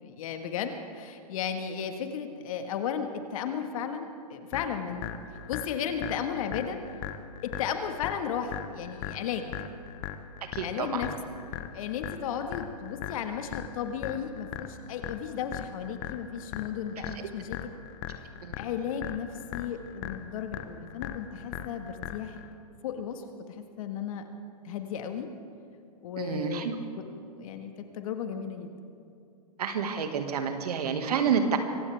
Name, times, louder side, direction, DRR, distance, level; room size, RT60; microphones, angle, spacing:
voice 1, 0.0-5.1 5.5-6.8 7.4-9.5 10.6-11.3 11.7-17.6 18.6-22.4 22.8-23.2 23.5-24.2 24.6-25.3 26.0-27.1 27.4-28.9, left 7 dB, 60° left, 6 dB, 1.6 m, -34 dB
sound 1, 4.5-22.5, left 11 dB, 40° left, 1.0 m, -39 dB
voice 2, 10.5-11.1 17.2-17.3 18.4-18.6 26.2-26.8 29.6-31.6, right 6 dB, 70° right, 6 dB, 1.9 m, -29 dB
24.5 x 16.0 x 3.5 m, 2.5 s
hypercardioid pair, 125°, 20 cm